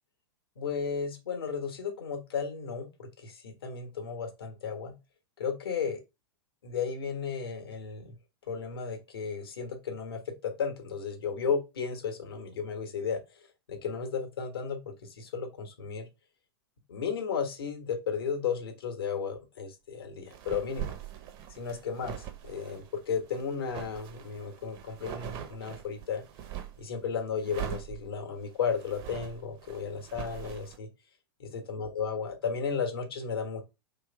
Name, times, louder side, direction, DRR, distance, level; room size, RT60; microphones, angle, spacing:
voice 1, 0.6-4.9 5.4-6.0 6.6-8.2 8.5-13.2 13.7-16.1 16.9-20.9 21.6-22.1 22.5-26.2 26.8-30.9 31.4-33.6, left 6 dB, 70° left, 4 dB, 1.4 m, -34 dB
sound 1, 20.2-26.9 27.4-30.8, right 10 dB, 40° right, 0.8 m, -42 dB
3.3 x 3.2 x 4.5 m, 0.26 s
figure-of-eight pair, 100°, 13 cm